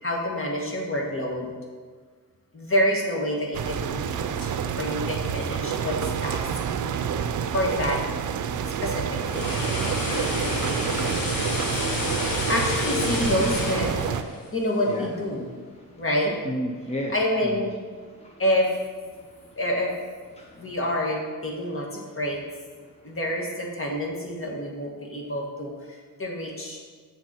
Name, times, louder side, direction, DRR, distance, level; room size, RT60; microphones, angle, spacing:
voice 1, 0.0-1.5 2.5-6.5 7.5-8.0 8.8-9.6 12.5-15.4 16.0-16.4 17.1-17.8 18.4-18.7 19.6-19.9 20.5-22.4 23.0-26.8, left 1 dB, 40° left, -1 dB, 1.9 m, -27 dB
sound 1, 3.5-14.2, right 7 dB, 60° right, 0.6 m, -28 dB
sound 2, 8.9-15.1 15.5-15.7, left 3 dB, 75° left, 1.4 m, -30 dB
voice 2, 16.4-17.1 17.4-17.6 18.0-18.4 19.1-19.6 20.3-20.8 22.8-23.2, equal, 20° left, 0 dB, 0.8 m, -35 dB
7.6 x 6.0 x 4.5 m, 1.5 s
cardioid pair, 80°, 34 cm